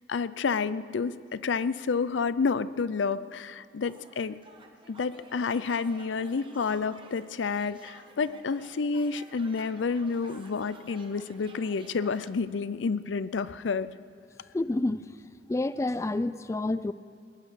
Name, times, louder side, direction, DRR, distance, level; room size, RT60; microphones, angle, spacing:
voice 1, 0.1-4.4 4.9-13.9, left 5 dB, 90° left, 16 dB, 0.5 m, -29 dB
sound 1, 3.8-12.3, right 2 dB, 30° right, 1.3 m, -52 dB
voice 2, 14.5-15.1 15.5-16.9, left 2 dB, 15° left, 14 dB, 0.3 m, -28 dB
18.5 x 10.5 x 6.3 m, 2.4 s
head